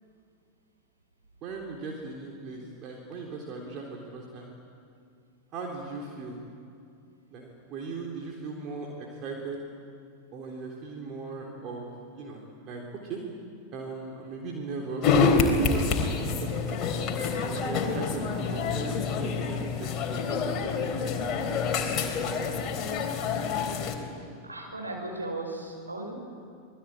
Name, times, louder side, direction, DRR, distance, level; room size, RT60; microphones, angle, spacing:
voice 1, 1.4-4.5 5.5-6.4 7.3-9.6 10.3-13.2 13.7-15.4 16.2-16.8 17.5-20.8, right 3 dB, 35° right, -1 dB, 3.7 m, -38 dB
sound 1, 15.0-23.9, left 4 dB, 30° left, 3.6 m, -27 dB
voice 2, 24.4-26.1, right 2 dB, 80° right, 1 dB, 5.7 m, -36 dB
27.0 x 20.5 x 8.9 m, 2.4 s
figure-of-eight pair, 90°, 0 cm